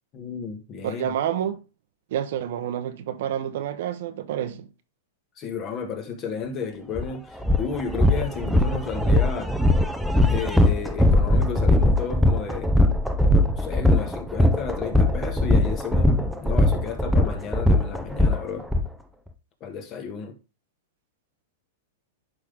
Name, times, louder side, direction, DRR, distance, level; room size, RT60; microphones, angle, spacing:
voice 1, 0.1-1.1 5.4-9.5 10.2-12.7 13.6-18.6 19.6-20.4, left 5 dB, 30° left, 1.7 m, -32 dB
voice 2, 0.8-1.6 2.1-4.7, right 10 dB, 65° right, 0.9 m, -28 dB
sound 1, 7.0-7.1 7.4-18.8, left 1 dB, ahead, 0.7 m, -20 dB
11.0 x 3.9 x 3.5 m
hypercardioid pair, 140°, 0 cm